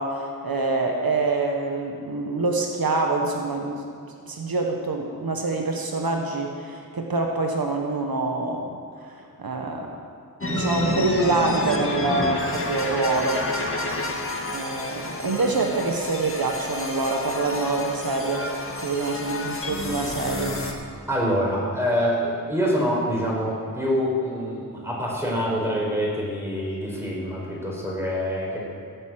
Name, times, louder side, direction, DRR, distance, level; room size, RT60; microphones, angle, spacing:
voice 1, 0.0-3.8 4.3-9.9 10.5-13.4 14.5-18.5 18.8-20.6, right 3 dB, 75° right, 2 dB, 1.4 m, -26 dB
sound 1, 10.4-20.7, left 2 dB, 35° left, 1.8 m, -29 dB
voice 2, 21.1-28.6, equal, 5° right, -4 dB, 4.9 m, -25 dB
17.0 x 8.2 x 7.8 m, 2.2 s
wide cardioid pair, 90°, 36 cm